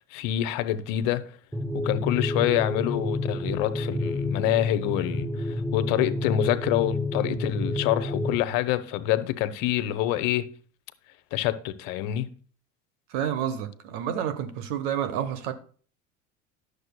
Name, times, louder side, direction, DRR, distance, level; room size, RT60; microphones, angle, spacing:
voice 1, 0.1-1.2 1.7-10.5 11.3-12.3, left 12 dB, 60° left, 0.7 m, -26 dB
sound 1, 1.5-8.4, left 2 dB, ahead, 0.7 m, -29 dB
voice 2, 13.1-15.5, right 9 dB, 65° right, 1.0 m, -29 dB
10.5 x 6.6 x 2.2 m
hypercardioid pair, 75°, 39 cm